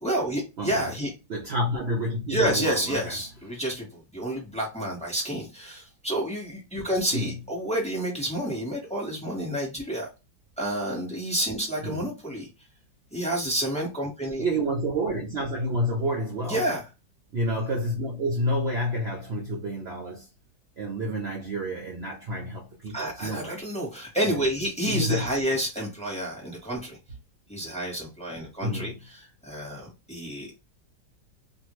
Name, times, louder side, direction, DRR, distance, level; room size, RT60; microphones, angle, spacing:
voice 1, 0.0-1.1 2.3-10.1 10.6-12.5 13.1-14.4 16.5-16.8 22.9-27.0 27.5-30.6, right 1 dB, 5° left, 1.0 m, -29 dB
voice 2, 0.6-0.9 1.3-3.1 7.1-7.3 11.8-12.1 14.4-16.6 17.3-20.3 20.8-23.6 24.2-24.5 24.9-25.3 28.6-28.9, equal, 70° right, 0.6 m, -29 dB
2.7 x 2.5 x 3.0 m
omnidirectional pair, 1.9 m